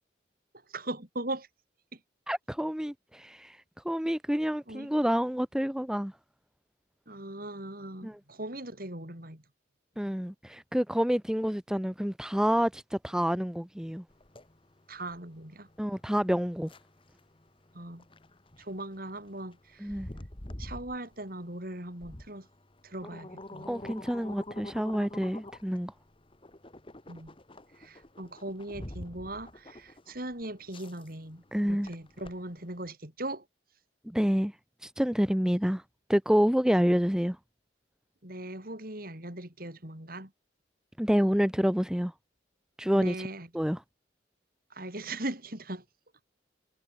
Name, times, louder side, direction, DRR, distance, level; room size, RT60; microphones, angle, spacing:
voice 1, 0.7-1.5 4.7-4.9 7.1-9.4 14.9-15.7 17.7-18.0 18.6-20.0 20.6-22.5 22.8-23.7 27.1-27.3 27.8-33.4 38.2-40.3 42.9-43.5 44.7-45.8, right 1 dB, 50° right, 5.5 m, -39 dB
voice 2, 2.3-3.6 3.8-6.1 8.0-8.2 10.0-14.0 15.8-16.7 19.8-20.1 23.7-25.9 31.5-31.9 34.1-34.5 34.8-35.8 36.1-37.4 41.0-42.1 42.8-43.1 43.5-43.8, equal, 5° right, 0.7 m, -28 dB
sound 1, 14.1-32.9, left 1 dB, 30° left, 1.8 m, -47 dB
head